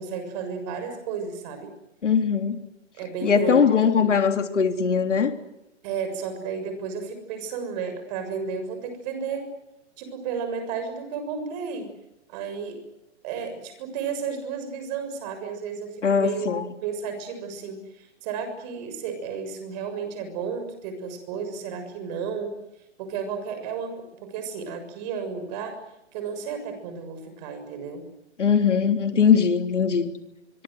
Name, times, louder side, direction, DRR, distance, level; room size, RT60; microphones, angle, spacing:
voice 1, 0.0-1.7 3.0-4.1 5.8-9.5 10.0-11.9 12.3-12.8 13.2-16.5 16.8-22.6 23.0-25.8 26.1-28.1, right 6 dB, 35° right, 7.0 m, -33 dB
voice 2, 2.0-2.6 3.2-5.3 16.0-16.6 28.4-30.1, left 6 dB, 85° left, 3.4 m, -21 dB
25.0 x 24.5 x 8.0 m
hypercardioid pair, 145°, 35 cm